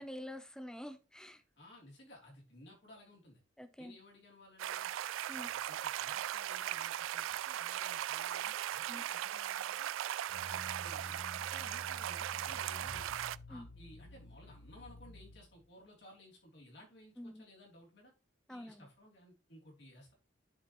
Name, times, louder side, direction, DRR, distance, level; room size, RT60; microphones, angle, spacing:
voice 1, 0.0-1.4 3.6-4.0 5.3-5.5 8.9-9.0 13.5-13.7 17.2-17.4 18.5-18.9, equal, 5° left, 8 dB, 0.7 m, -47 dB
voice 2, 1.6-3.4 3.8-4.9 5.3-9.9 10.4-13.2 13.5-18.1 18.5-20.1, left 1 dB, 60° left, -2 dB, 3.3 m, -58 dB
sound 1, 4.6-13.4, right 12 dB, 85° right, 0.3 m, -38 dB
sound 2, 10.3-15.7, left 1 dB, 80° left, 0.9 m, -51 dB
10.0 x 5.0 x 3.1 m, 0.32 s
head